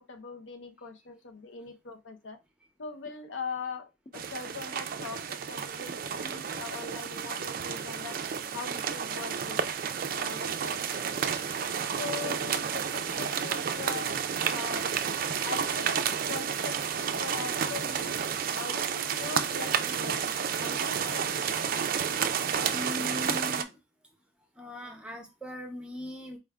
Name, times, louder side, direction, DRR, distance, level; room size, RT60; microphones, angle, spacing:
voice 1, 0.0-2.4 2.8-8.2 8.5-9.7 10.1-11.2 12.0-14.9 15.4-18.2 18.5-20.3 20.6-21.6, left 5 dB, 70° left, 0.5 m, -41 dB
sound 1, 3.1-3.2 4.1-4.2 5.1-5.2 6.1-6.2 7.1-7.2, left 1 dB, 35° left, 0.7 m, -48 dB
sound 2, 4.1-23.6, right 7 dB, 45° right, 0.3 m, -31 dB
voice 2, 22.6-23.8 24.6-26.4, left 1 dB, 5° right, 0.7 m, -39 dB
4.4 x 2.2 x 3.5 m
head